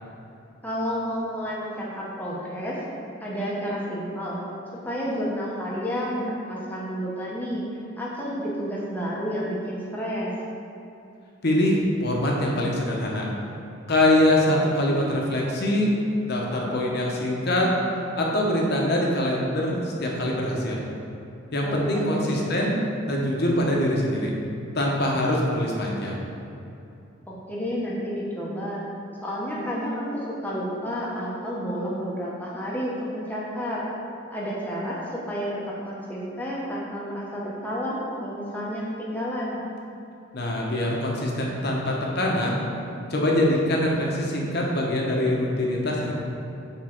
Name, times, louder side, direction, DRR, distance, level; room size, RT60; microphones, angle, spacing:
voice 1, 0.6-2.8 3.2-4.4 4.8-7.6 8.0-10.3 16.5-16.8 21.6-22.3 27.3-28.8 29.2-33.8 34.3-39.6, equal, 10° left, -6 dB, 0.8 m, -30 dB
voice 2, 11.4-13.2 13.9-15.9 16.2-17.7 18.2-20.8 21.5-22.7 23.1-24.3 24.7-26.1 40.3-42.6 43.1-46.1, left 1 dB, 50° left, -2 dB, 0.9 m, -23 dB
6.3 x 3.6 x 4.4 m, 2.8 s
head